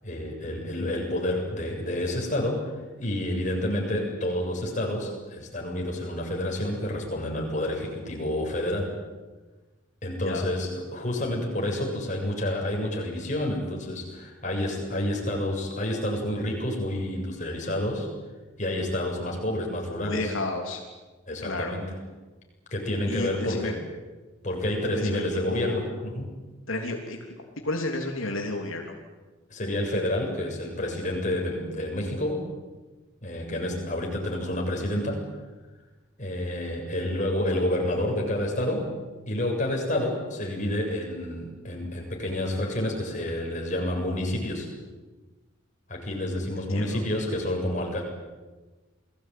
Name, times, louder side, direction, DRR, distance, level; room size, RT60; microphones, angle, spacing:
voice 1, 0.0-2.7 3.0-8.9 10.0-18.1 18.6-20.3 21.3-21.9 22.7-23.8 24.4-26.3 29.5-32.4 33.2-35.2 36.2-38.9 39.3-44.7 45.9-48.0, left 1 dB, 35° left, 0 dB, 7.6 m, -29 dB
voice 2, 20.0-20.8 21.4-21.7 23.1-23.7 24.9-25.9 26.7-27.4 27.6-28.9 46.6-47.0, left 2 dB, 85° left, 2 dB, 3.4 m, -32 dB
29.0 x 20.5 x 9.4 m, 1.2 s
head